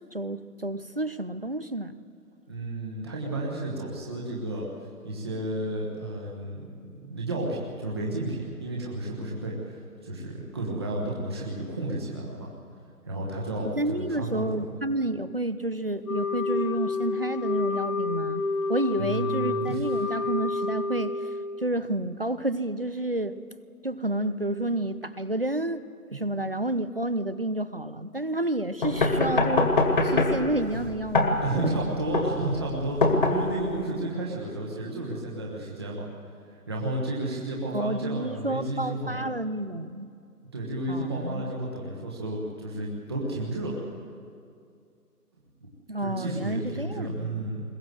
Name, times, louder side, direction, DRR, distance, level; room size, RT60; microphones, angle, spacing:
voice 1, 0.1-2.0 13.7-18.4 18.7-21.2 21.6-23.4 23.8-25.9 26.1-29.7 30.0-31.9 37.7-40.1 40.9-41.5 45.9-47.5, right 1 dB, 40° right, 14 dB, 0.5 m, -30 dB
voice 2, 2.5-4.7 5.0-12.5 13.0-14.7 19.0-19.9 26.1-26.2 31.4-36.1 36.5-39.3 40.5-43.8 45.6-45.7 46.0-47.6, right 2 dB, 15° right, -4 dB, 1.3 m, -32 dB
Wind instrument woodwind instrument, 16.0-21.7, left 3 dB, 65° left, 1.7 m, -29 dB
sound 1, 28.8-33.8, left 2 dB, 35° left, 1.9 m, -24 dB
21.5 x 20.0 x 7.8 m, 2.3 s
hypercardioid pair, 175°, 46 cm